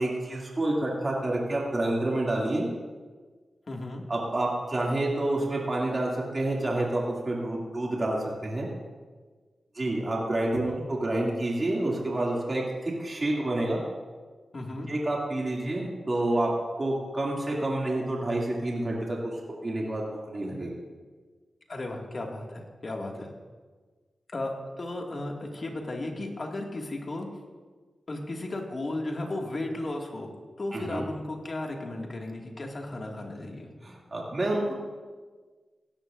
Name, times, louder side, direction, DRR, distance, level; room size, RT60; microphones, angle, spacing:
voice 1, 0.0-2.7 4.1-8.7 9.7-13.8 14.9-16.5 16.8-19.4 19.6-20.8 30.7-31.0 33.8-34.7, right 1 dB, 40° right, -3 dB, 2.5 m, -28 dB
voice 2, 3.7-4.0 10.6-10.8 14.5-14.9 21.7-23.3 24.3-27.3 28.1-30.3 30.6-33.7, left 2 dB, 50° left, 1 dB, 2.1 m, -35 dB
17.0 x 11.5 x 2.6 m, 1.4 s
cardioid pair, 50°, 0 cm